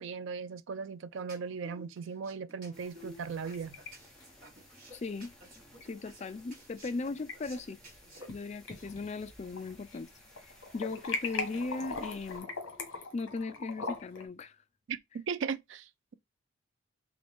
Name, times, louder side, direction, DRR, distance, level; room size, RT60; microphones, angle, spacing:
voice 1, 0.0-3.8 14.9-15.0 15.3-16.1, right 5 dB, 60° right, 0.3 m, -37 dB
sound 1, 1.2-8.3, right 1 dB, 40° right, 1.7 m, -53 dB
sound 2, 2.7-12.4, equal, 5° left, 1.0 m, -58 dB
sound 3, 3.2-3.9 4.2-4.3 5.8-5.9 7.0-7.3 7.8-8.4 8.7-10.0 10.3-14.2, left 4 dB, 80° left, 1.3 m, -39 dB
voice 2, 4.9-5.3 5.9-7.8 8.3-10.1 10.4-12.5 13.1-14.6, left 3 dB, 30° left, 0.3 m, -38 dB
3.9 x 3.2 x 3.5 m
head